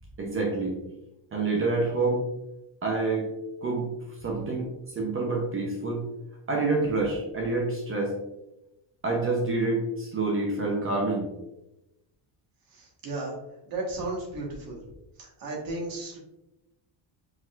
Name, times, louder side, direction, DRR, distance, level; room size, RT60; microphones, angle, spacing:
voice 1, 0.2-0.8 1.3-2.2 2.8-3.3 3.6-3.9 4.2-6.0 6.5-8.2 9.0-11.3, right 3 dB, 25° right, 0 dB, 0.7 m, -27 dB
voice 2, 12.7-13.3 13.7-14.8 15.2-16.2, right 2 dB, 45° right, -2 dB, 1.4 m, -34 dB
4.8 x 4.0 x 2.4 m, 0.91 s
cardioid pair, 170°, 48 cm